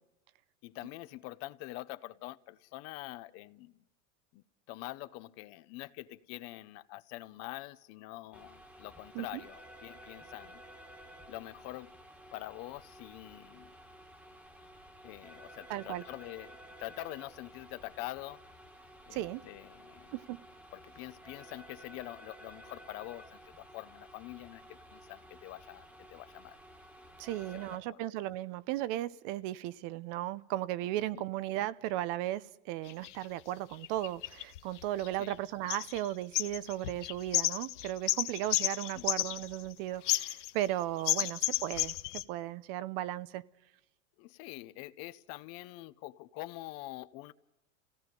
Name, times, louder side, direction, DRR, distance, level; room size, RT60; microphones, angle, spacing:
voice 1, 0.6-3.8 4.3-10.6 11.3-11.9 12.3-13.7 15.0-18.4 19.1-20.1 20.7-26.6 27.5-27.6 31.1-31.2 35.2-35.3 38.9-39.0 44.2-47.3, left 18 dB, 45° left, 15 dB, 0.8 m, -45 dB
sound 1, 8.3-27.8, right 1 dB, 5° right, 1.6 m, -53 dB
voice 2, 15.7-16.0 19.1-19.4 20.1-20.4 27.2-43.4, right 14 dB, 50° right, 18 dB, 0.7 m, -36 dB
sound 2, 32.9-33.1 33.8-35.3 35.7-36.1 36.3-39.7 40.0-40.7 41.1-42.2, left 17 dB, 85° left, 1.0 m, -32 dB
29.0 x 17.0 x 5.3 m, 0.89 s
supercardioid pair, 155°, 35 cm